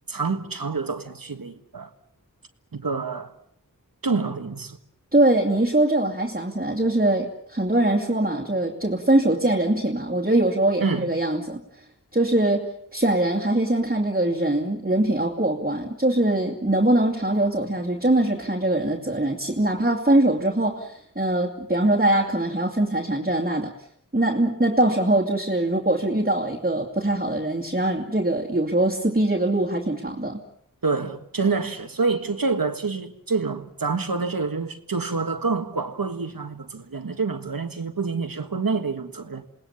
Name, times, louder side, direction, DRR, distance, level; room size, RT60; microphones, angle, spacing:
voice 1, 0.1-1.9 2.7-3.3 4.0-4.8 10.8-11.1 30.8-39.4, right 4 dB, 85° right, 1.7 m, -27 dB
voice 2, 5.1-11.6 12.1-12.7 12.9-23.7 24.1-30.4, right 1 dB, 25° right, 2.5 m, -22 dB
28.5 x 19.5 x 7.1 m
wide cardioid pair, 55°, 34 cm